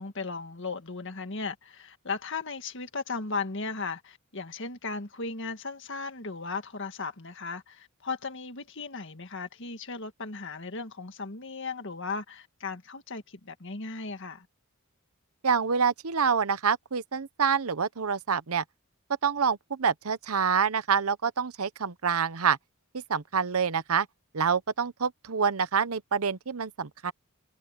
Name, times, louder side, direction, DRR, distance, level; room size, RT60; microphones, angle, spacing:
voice 1, 0.0-14.5, left 4 dB, 55° left, 1.8 m, -36 dB
voice 2, 15.4-18.6 19.2-22.6 22.9-24.1 24.3-27.1, right 6 dB, 75° right, 0.9 m, -27 dB
head